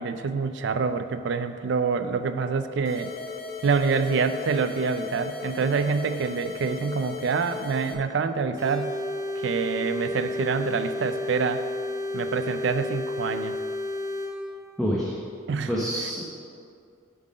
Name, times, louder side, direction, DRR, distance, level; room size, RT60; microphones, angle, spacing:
voice 1, 0.0-3.1 3.6-9.0 9.4-11.6 12.1-13.6 15.5-15.7, right 5 dB, 60° right, 9 dB, 0.4 m, -26 dB
sound 1, 2.8-7.9, left 4 dB, 50° left, 0.8 m, -37 dB
sound 2, 8.6-14.3, left 1 dB, 15° right, 1.0 m, -31 dB
voice 2, 14.8-15.2 15.7-16.2, equal, ahead, -7 dB, 0.7 m, -26 dB
7.7 x 3.8 x 6.3 m, 2.4 s
head